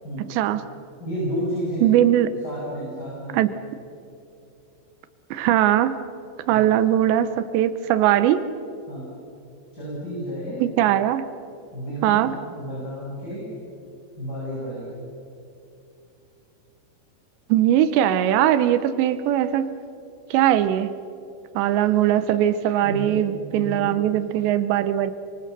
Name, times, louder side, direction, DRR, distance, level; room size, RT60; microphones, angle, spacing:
voice 1, 0.3-0.6 1.8-2.4 3.3-3.6 5.3-6.0 6.5-8.5 10.6-11.3 12.0-12.3 17.5-19.8 20.3-20.9 21.6-25.1, right 11 dB, 80° right, 3.0 m, -20 dB
voice 2, 1.0-2.1 2.4-3.4 6.5-6.6 8.9-9.1 9.7-10.6 11.7-13.4 14.2-14.9 22.8-23.2 23.5-23.9, equal, 20° left, 8.0 m, -31 dB
30.0 x 24.5 x 6.7 m
omnidirectional pair, 5.1 m